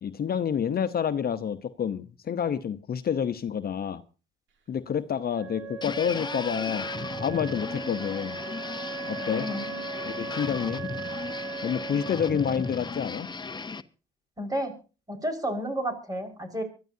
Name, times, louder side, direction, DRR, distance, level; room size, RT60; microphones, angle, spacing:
voice 1, 0.0-4.0 4.7-6.9 7.2-8.4 9.1-9.5 10.0-10.8 11.6-13.3, left 8 dB, 50° left, 0.9 m, -28 dB
Wind instrument woodwind instrument, 5.3-13.0, right 5 dB, 70° right, 2.7 m, -38 dB
sound 1, 5.8-13.8, left 4 dB, 20° left, 0.9 m, -36 dB
voice 2, 9.3-9.8 14.4-14.7 15.1-16.6, equal, 20° right, 5.3 m, -31 dB
24.0 x 13.5 x 2.8 m
cardioid pair, 90°, 20 cm